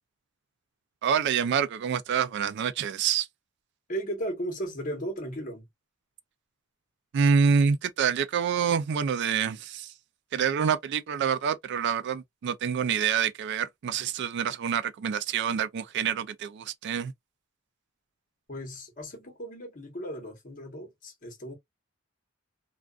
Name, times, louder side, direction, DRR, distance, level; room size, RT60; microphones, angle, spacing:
voice 1, 1.0-3.3 7.1-9.9 10.3-17.1, right 7 dB, 55° right, 0.3 m, -27 dB
voice 2, 3.9-5.7 18.5-21.5, right 1 dB, 40° left, 1.0 m, -36 dB
2.3 x 2.3 x 2.2 m
head